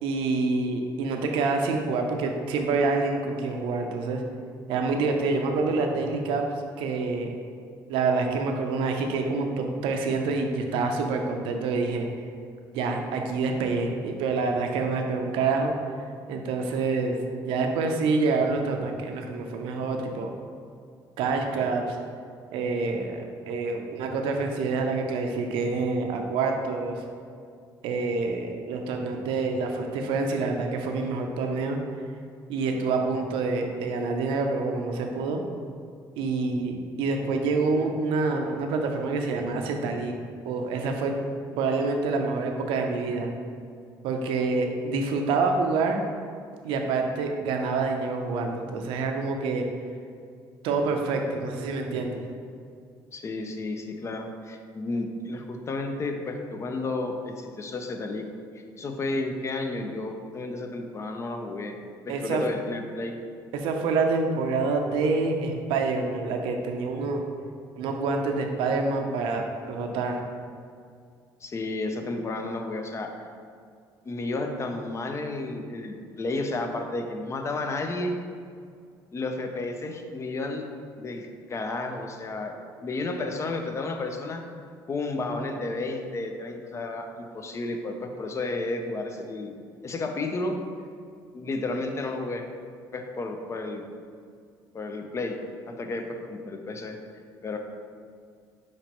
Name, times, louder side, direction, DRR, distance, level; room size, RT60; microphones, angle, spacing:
voice 1, 0.0-4.2 4.7-6.5 6.8-7.3 7.9-12.1 12.7-20.3 21.2-22.0 22.5-27.0 27.8-31.8 32.5-35.4 36.2-40.1 40.4-41.1 41.6-43.3 44.0-46.0 46.6-49.7 50.6-52.2 62.1-62.4 63.5-67.2 67.8-70.2, right 3 dB, 85° right, 3 dB, 0.5 m, -27 dB
voice 2, 53.1-58.3 58.8-61.8 62.0-63.2 71.4-73.1 74.0-78.2 79.1-80.7 81.0-82.6 82.8-84.4 84.9-89.5 89.8-90.6 91.3-92.4 92.9-93.8 94.7-95.4 95.7-97.0 97.4-97.6, left 2 dB, 35° left, 4 dB, 0.5 m, -32 dB
5.8 x 3.0 x 2.9 m, 2.2 s
cardioid pair, 90°, 9 cm